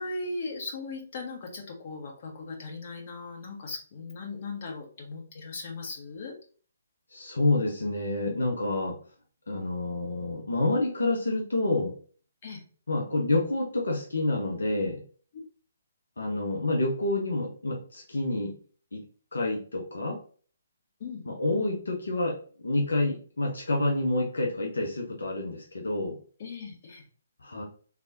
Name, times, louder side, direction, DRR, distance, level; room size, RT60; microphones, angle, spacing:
voice 1, 0.0-6.3 8.2-8.4 12.4-12.6 21.0-21.2 26.4-27.0, left 3 dB, 45° left, 1 dB, 1.5 m, -38 dB
voice 2, 7.1-9.0 9.5-11.9 12.9-15.0 16.2-18.5 18.9-19.0 19.3-20.2 21.3-26.2 27.4-27.6, left 2 dB, 75° left, 0 dB, 1.1 m, -28 dB
4.0 x 3.4 x 2.9 m, 0.41 s
figure-of-eight pair, 140°, 0 cm